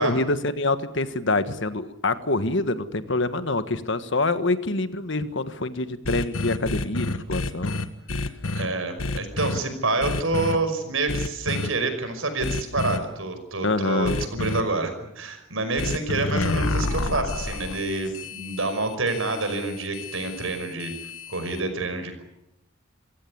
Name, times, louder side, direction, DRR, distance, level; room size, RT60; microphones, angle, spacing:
voice 1, 0.0-7.8 13.6-14.2, left 2 dB, 60° left, 11 dB, 1.5 m, -26 dB
sound 1, 6.0-8.7 9.0-9.6 10.0-10.6 11.1-11.7 12.4-13.0 14.0-14.6 15.8-21.6, left 2 dB, 80° left, 1.6 m, -29 dB
voice 2, 8.5-20.9 21.3-22.2, right 2 dB, 70° right, 8 dB, 5.4 m, -27 dB
27.0 x 16.0 x 9.5 m, 0.83 s
head